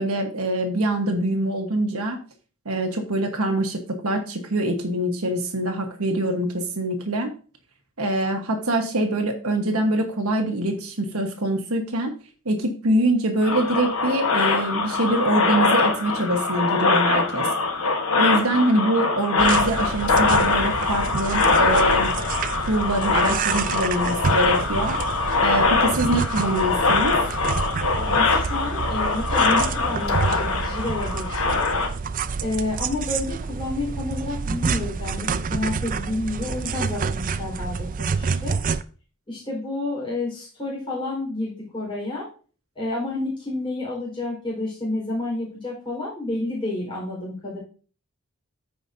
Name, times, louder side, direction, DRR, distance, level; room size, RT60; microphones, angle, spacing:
voice 1, 0.0-2.2 2.6-7.3 8.0-12.1 12.4-17.5 18.1-22.1 22.7-25.0 25.4-27.2, right 1 dB, 85° right, 3 dB, 1.4 m, -24 dB
sound 1, 13.4-31.9, left 4 dB, 70° left, 1.4 m, -23 dB
sound 2, 19.4-38.8, right 5 dB, 40° right, 0.4 m, -28 dB
voice 2, 27.9-31.7 32.4-38.6 39.3-42.3 42.7-47.6, left 2 dB, 25° left, -6 dB, 4.6 m, -30 dB
14.5 x 5.1 x 2.7 m, 0.39 s
head